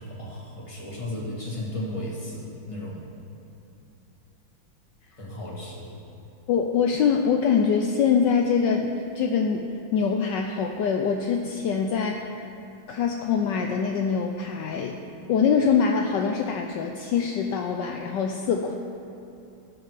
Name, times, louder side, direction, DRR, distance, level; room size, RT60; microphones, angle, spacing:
voice 1, 0.0-3.0 5.2-6.0, left 1 dB, 15° left, -4 dB, 1.9 m, -34 dB
voice 2, 6.5-9.6 9.9-12.5 12.9-15.0 15.3-18.8, left 6 dB, 70° left, 3 dB, 1.2 m, -24 dB
17.5 x 6.2 x 4.9 m, 2.8 s
omnidirectional pair, 2.1 m